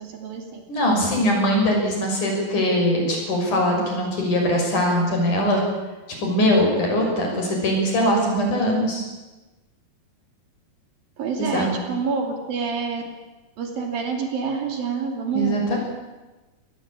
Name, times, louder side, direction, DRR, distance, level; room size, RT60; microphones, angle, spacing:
voice 1, 0.0-0.6 11.2-13.0 13.6-15.6, right 5 dB, 60° right, 4 dB, 4.2 m, -27 dB
voice 2, 0.7-5.6 6.2-9.0 11.4-11.8 15.3-15.8, equal, 45° left, 0 dB, 7.7 m, -21 dB
25.0 x 19.0 x 8.8 m, 1.1 s
omnidirectional pair, 4.9 m